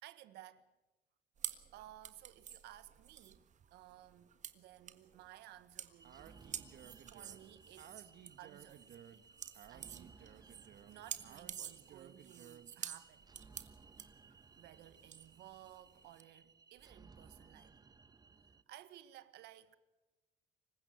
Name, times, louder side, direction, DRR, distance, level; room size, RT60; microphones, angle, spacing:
voice 1, 0.0-0.7 1.5-6.8 7.1-8.1 8.4-9.2 9.7-10.5 10.9-13.3 14.6-17.8 18.7-19.8, right 13 dB, 80° right, 1.5 m, -57 dB
sound 1, 1.4-16.2, right 8 dB, 45° right, 1.6 m, -49 dB
sound 2, 6.0-18.6, right 4 dB, 25° right, 1.1 m, -62 dB
Speech, 6.0-12.8, right 10 dB, 65° right, 1.6 m, -58 dB
26.0 x 15.5 x 8.1 m
cardioid pair, 110°, 17 cm